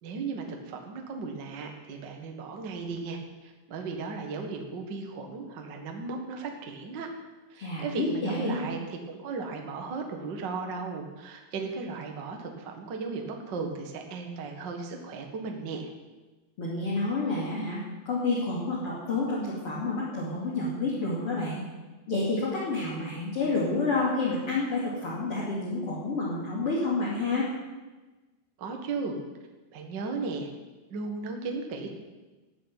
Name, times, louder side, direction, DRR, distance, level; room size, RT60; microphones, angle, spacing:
voice 1, 0.0-7.1 7.5-15.9 28.6-29.2 29.7-30.5 30.9-31.9, right 4 dB, 70° right, 3 dB, 1.0 m, -36 dB
voice 2, 7.6-8.6 16.6-17.8 18.0-21.6 22.1-27.5, left 3 dB, 35° left, -6 dB, 3.2 m, -29 dB
13.5 x 8.3 x 9.0 m, 1.2 s
omnidirectional pair, 5.1 m